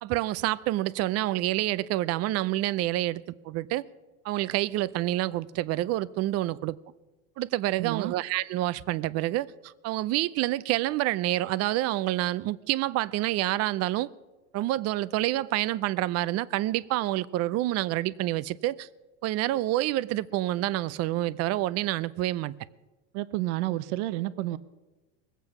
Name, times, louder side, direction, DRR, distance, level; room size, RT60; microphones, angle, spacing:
voice 1, 0.0-3.8 4.2-6.8 7.4-14.1 14.5-18.9 19.2-22.5, right 16 dB, 45° right, 0.5 m, -28 dB
voice 2, 7.8-8.1 23.1-24.6, right 16 dB, 85° right, 0.7 m, -30 dB
21.0 x 8.3 x 5.9 m
supercardioid pair, 130°, 34 cm